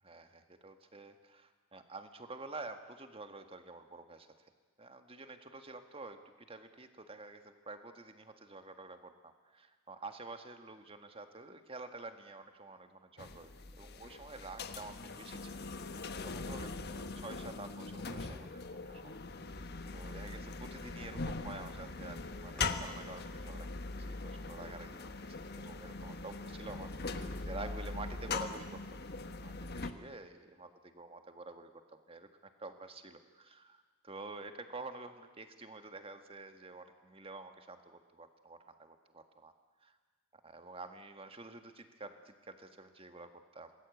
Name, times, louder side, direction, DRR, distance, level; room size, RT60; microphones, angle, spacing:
voice 1, 0.0-4.5 4.8-13.5 13.8-15.6 15.9-19.2 19.5-23.7 24.0-28.8 29.4-39.5 39.8-40.0 40.3-43.8, right 3 dB, 25° right, 7 dB, 1.7 m, -49 dB
sound 1, 13.2-29.9, left 3 dB, 50° left, 1.3 m, -41 dB
Motor vehicle (road), 22.5-27.1, equal, 5° left, 2.1 m, -52 dB
27.0 x 20.0 x 8.5 m, 1.4 s
head